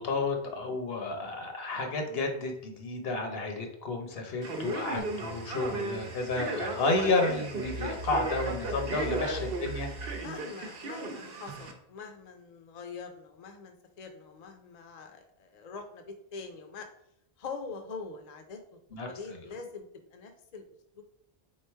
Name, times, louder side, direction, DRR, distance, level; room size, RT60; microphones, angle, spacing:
voice 1, 0.0-9.9 18.9-19.1, left 3 dB, 70° left, 4 dB, 1.0 m, -31 dB
voice 2, 1.0-1.5 5.4-5.9 9.0-9.4 10.2-16.9 17.4-18.8 19.1-20.6 21.0-21.1, left 4 dB, 50° left, 5 dB, 0.6 m, -44 dB
Male speech man speaking, 4.4-11.7, right 2 dB, 65° right, 0.9 m, -36 dB
sound 1, 5.0-10.3, right 2 dB, 45° right, 0.5 m, -42 dB
3.7 x 3.1 x 4.4 m, 0.72 s
omnidirectional pair, 1.1 m